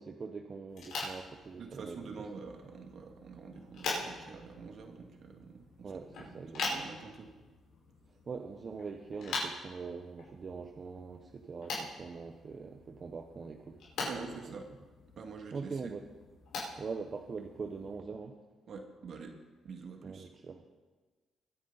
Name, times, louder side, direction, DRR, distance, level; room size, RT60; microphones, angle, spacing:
voice 1, 0.0-2.0 5.8-6.9 8.1-14.6 15.5-16.0 16.8-18.4 20.0-20.7, right 5 dB, 40° right, 4 dB, 1.0 m, -43 dB
sound 1, 0.7-18.0, left 3 dB, 75° left, 5.1 m, -43 dB
voice 2, 1.6-7.3 14.0-14.7 15.2-15.9 18.7-19.4 19.6-20.3, right 4 dB, 60° right, 3 dB, 2.2 m, -46 dB
23.0 x 9.6 x 4.1 m, 1.3 s
cardioid pair, 90°, 0 cm